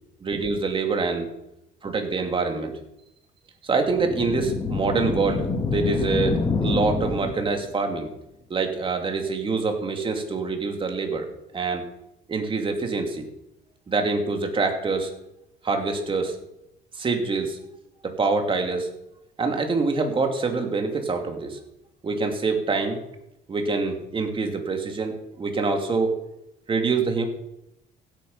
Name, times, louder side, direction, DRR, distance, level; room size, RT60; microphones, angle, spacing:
voice 1, 0.2-1.3 1.8-2.7 3.6-8.1 8.5-11.3 11.5-11.8 12.3-13.3 13.9-15.1 15.6-16.4 17.0-17.6 18.0-18.9 19.4-21.6 22.0-23.0 23.5-26.1 26.7-27.2, right 4 dB, 30° right, 4 dB, 2.6 m, -25 dB
sound 1, 3.9-7.7, left 4 dB, 25° left, 1.9 m, -27 dB
16.0 x 9.1 x 5.6 m, 0.86 s
cardioid pair, 110°, 17 cm